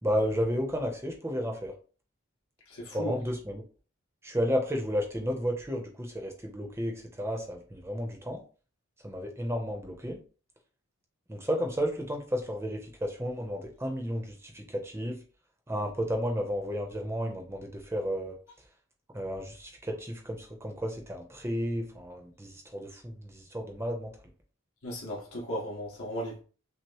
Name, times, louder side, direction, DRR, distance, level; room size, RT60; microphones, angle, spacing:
voice 1, 0.0-1.7 2.9-3.6 4.2-8.4 9.0-10.2 11.3-15.2 15.7-18.4 19.1-24.1, equal, 10° right, 0.6 m, -32 dB
voice 2, 2.7-3.2 24.8-26.4, equal, 75° left, 1.6 m, -36 dB
6.0 x 2.0 x 2.9 m
head